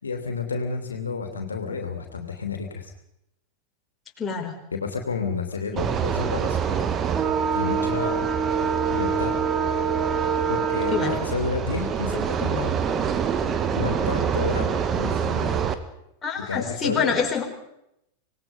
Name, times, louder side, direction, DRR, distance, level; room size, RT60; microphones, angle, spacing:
voice 1, 0.0-2.9 4.7-6.8 7.5-8.3 8.9-9.3 10.5-12.8 13.7-15.6 16.5-17.2, left 5 dB, 75° left, 4 dB, 3.1 m, -30 dB
voice 2, 4.2-4.6 5.7-5.8 10.9-11.1 16.2-17.4, left 6 dB, 20° left, 1 dB, 4.6 m, -26 dB
sound 1, 5.8-15.7, right 7 dB, 25° right, 1.8 m, -25 dB
26.0 x 19.0 x 5.5 m, 0.81 s
figure-of-eight pair, 90°, 0 cm